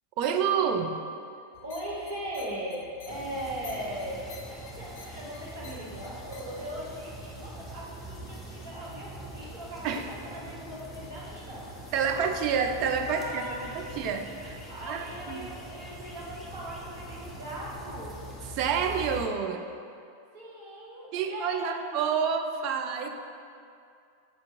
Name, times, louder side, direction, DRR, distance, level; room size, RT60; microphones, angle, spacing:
voice 1, 0.2-1.1 9.8-10.0 11.9-13.7 14.0-14.6 14.9-15.5 18.6-19.7 21.1-23.1, right 6 dB, 40° right, 5 dB, 0.3 m, -28 dB
sound 1, 1.5-6.7, left 4 dB, 50° left, 0.4 m, -50 dB
voice 2, 1.6-11.7 12.1-12.2 13.1-14.0 14.7-18.2 20.3-21.9, equal, 60° right, -7 dB, 1.2 m, -39 dB
sound 2, 3.1-19.3, right 1 dB, 10° left, 0.6 m, -43 dB
5.1 x 2.8 x 3.4 m, 2.4 s
figure-of-eight pair, 90°, 0 cm